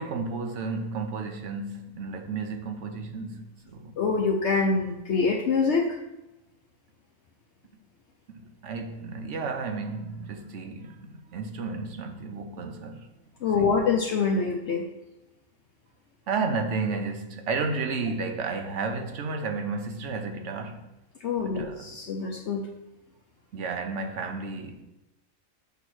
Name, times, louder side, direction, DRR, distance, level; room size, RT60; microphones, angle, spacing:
voice 1, 0.0-4.0 8.3-13.1 13.6-13.8 16.3-20.9 21.4-21.9 23.5-24.8, right 4 dB, 60° right, 1.0 m, -32 dB
voice 2, 4.0-6.0 13.4-14.9 21.2-22.6, left 4 dB, 60° left, 0.9 m, -25 dB
8.1 x 3.0 x 6.1 m
omnidirectional pair, 1.5 m